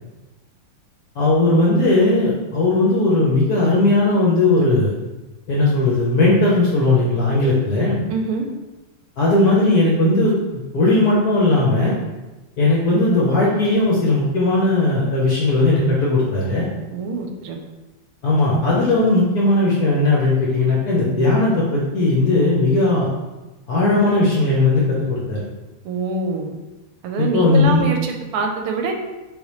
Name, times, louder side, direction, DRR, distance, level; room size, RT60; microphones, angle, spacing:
voice 1, 1.2-4.9 5.5-8.0 9.2-10.3 10.7-11.9 12.6-16.6 18.2-23.1 23.7-25.4 27.3-27.8, left 2 dB, 70° left, -5 dB, 0.9 m, -17 dB
voice 2, 8.1-8.5 16.9-17.6 25.8-26.5 27.0-28.9, right 4 dB, 85° right, 3 dB, 1.5 m, -24 dB
4.0 x 3.6 x 3.0 m, 1.1 s
omnidirectional pair, 2.4 m